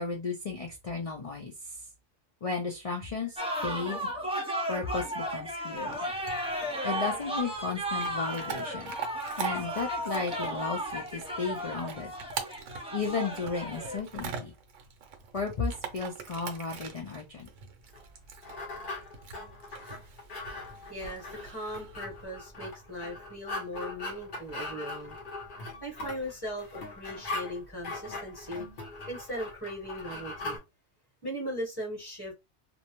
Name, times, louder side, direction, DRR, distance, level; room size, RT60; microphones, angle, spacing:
voice 1, 0.0-1.8 2.4-4.1 4.7-6.0 6.8-8.9 9.4-12.1 12.9-14.5 15.3-17.5, left 4 dB, 65° left, 0.3 m, -34 dB
sound 1, 3.4-14.0, equal, 10° right, 0.4 m, -34 dB
Chewing mastication / Dog, 5.8-22.3, right 7 dB, 75° right, 1.0 m, -43 dB
sound 2, 17.9-30.6, left 2 dB, 50° left, 0.8 m, -40 dB
voice 2, 20.9-25.2 25.8-28.7 29.1-30.6 31.2-32.3, equal, 20° left, 1.2 m, -38 dB
2.5 x 2.0 x 2.9 m
omnidirectional pair, 1.3 m